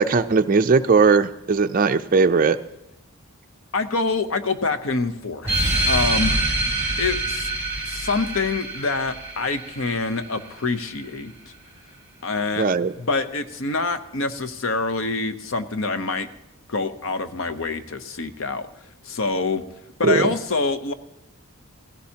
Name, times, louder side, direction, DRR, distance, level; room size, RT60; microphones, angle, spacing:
voice 1, 0.0-2.6 12.6-12.9 20.0-20.3, right 4 dB, 40° right, 8 dB, 0.4 m, -18 dB
voice 2, 3.7-5.6 5.8-6.6 7.0-7.5 7.9-11.3 12.2-12.7 13.0-16.3 16.7-18.7 19.0-19.6 20.0-20.9, left 3 dB, 65° left, 10 dB, 0.7 m, -26 dB
sound 1, 5.4-10.5, right 2 dB, 10° right, 3.3 m, -25 dB
16.5 x 16.0 x 2.8 m, 0.90 s
head